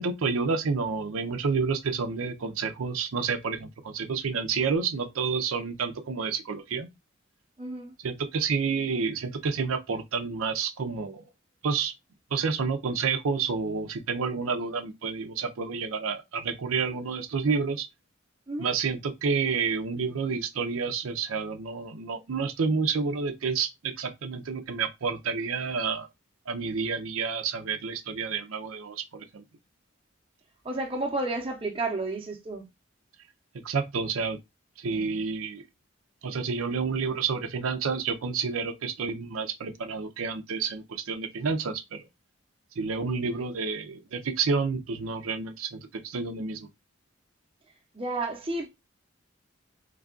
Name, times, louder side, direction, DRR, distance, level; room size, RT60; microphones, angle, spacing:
voice 1, 0.0-6.9 8.0-11.2 11.6-11.9 12.3-17.9 18.6-26.1 26.5-29.4 33.6-34.4 34.8-35.6 36.2-42.1 42.8-46.7, right 5 dB, 85° right, 0.5 m, -29 dB
voice 2, 7.6-7.9 18.5-18.7 30.6-32.7 34.9-35.2 47.9-48.7, right 2 dB, 25° right, 0.7 m, -32 dB
3.2 x 2.3 x 3.7 m
head